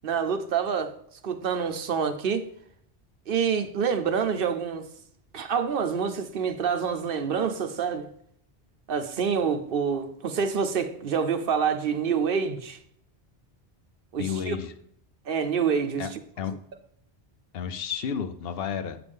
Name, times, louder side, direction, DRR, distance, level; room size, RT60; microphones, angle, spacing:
voice 1, 0.0-0.9 1.2-2.5 3.3-4.9 5.3-8.1 8.9-12.8 14.1-14.6 15.3-16.2, right 6 dB, 65° right, 9 dB, 0.8 m, -27 dB
voice 2, 14.2-14.7 16.0-16.6 17.5-19.0, left 7 dB, 70° left, 9 dB, 0.8 m, -32 dB
7.9 x 6.8 x 3.5 m, 0.68 s
omnidirectional pair, 1.0 m